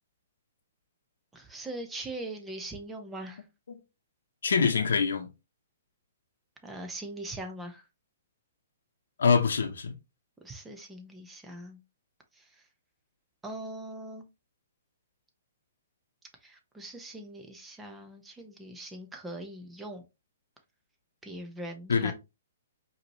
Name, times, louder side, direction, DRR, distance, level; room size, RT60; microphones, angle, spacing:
voice 1, 1.3-3.4 6.6-7.8 10.4-11.8 12.3-12.6 13.4-14.2 16.4-20.0 21.2-22.1, right 1 dB, 10° right, 1.0 m, -41 dB
voice 2, 4.4-5.3 9.2-9.9 21.9-22.1, left 5 dB, 75° left, 0.9 m, -24 dB
4.9 x 3.1 x 3.1 m
hypercardioid pair, 135°, 0 cm